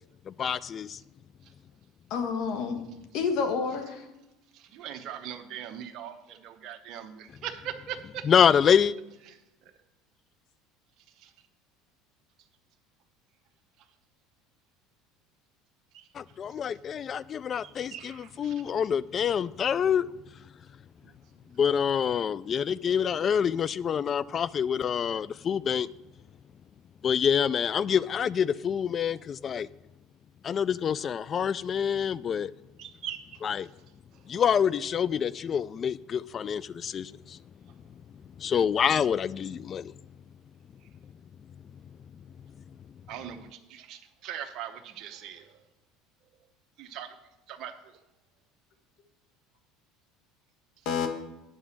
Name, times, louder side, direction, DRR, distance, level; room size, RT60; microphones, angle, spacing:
voice 1, 0.3-1.0 8.2-8.9 16.1-20.1 21.5-25.9 27.0-29.7 30.4-32.5 33.4-33.7 34.3-37.4 38.4-39.9, left 8 dB, 35° left, 0.3 m, -26 dB
voice 2, 2.1-2.8 3.1-4.0 50.8-51.1, left 5 dB, 65° left, 1.5 m, -29 dB
voice 3, 4.5-8.2 9.3-9.4 11.2-11.3 15.9-16.0 17.6-18.5 32.8-33.2 34.3-34.4 43.1-45.6 46.8-47.1 47.5-47.7, right 10 dB, 55° right, 0.9 m, -40 dB
9.5 x 4.9 x 7.1 m
supercardioid pair, 105°, 0 cm